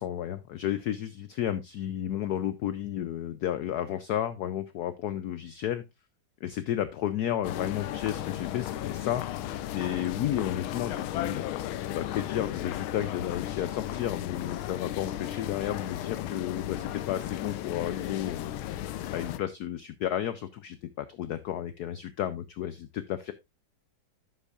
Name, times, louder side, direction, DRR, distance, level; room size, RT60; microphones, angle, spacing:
voice 1, 0.0-5.8 6.4-9.4 9.7-11.4 11.9-18.8 19.1-23.3, left 11 dB, 70° left, 13 dB, 0.9 m, -32 dB
sound 1, 7.4-19.4, left 12 dB, 90° left, 1.5 m, -35 dB
11.0 x 8.2 x 2.4 m, 0.21 s
omnidirectional pair, 2.2 m